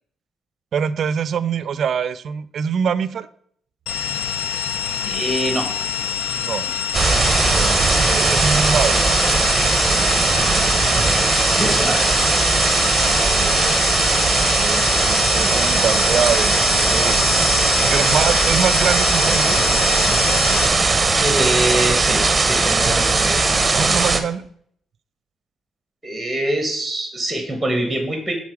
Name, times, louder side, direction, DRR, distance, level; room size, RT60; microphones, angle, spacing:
voice 1, 0.7-3.3 6.3-6.7 7.5-9.0 12.7-13.7 14.5-19.6 23.7-24.4, right 7 dB, 60° right, 16 dB, 0.4 m, -24 dB
sound 1, 3.9-20.7, left 8 dB, 90° left, 0.7 m, -26 dB
voice 2, 5.1-5.7 11.4-12.2 17.4-17.6 17.8-17.9 21.2-23.4 26.0-28.4, right 1 dB, 5° right, 4 dB, 1.4 m, -24 dB
sound 2, 6.9-24.2, right 3 dB, 25° right, 0.8 m, -18 dB
7.2 x 4.0 x 4.6 m, 0.64 s
cardioid pair, 90°, 0 cm